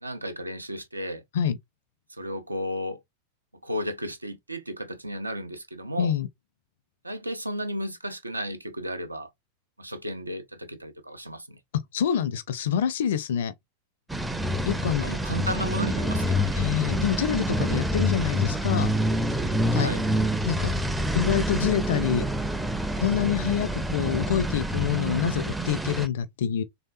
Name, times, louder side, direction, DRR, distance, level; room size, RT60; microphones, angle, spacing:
voice 1, 0.0-1.2 2.1-3.0 3.6-6.1 7.0-9.3 9.8-11.6 15.0-16.6 19.7-20.0, equal, 85° right, 0.5 m, -33 dB
voice 2, 11.9-13.5 14.7-15.0 16.5-18.9 19.7-19.9 20.4-20.7 21.1-22.2 23.0-26.6, left 9 dB, 60° left, 0.5 m, -26 dB
sound 1, 14.1-26.1, equal, 5° right, 0.4 m, -27 dB
3.3 x 2.8 x 2.5 m
figure-of-eight pair, 90°, 0 cm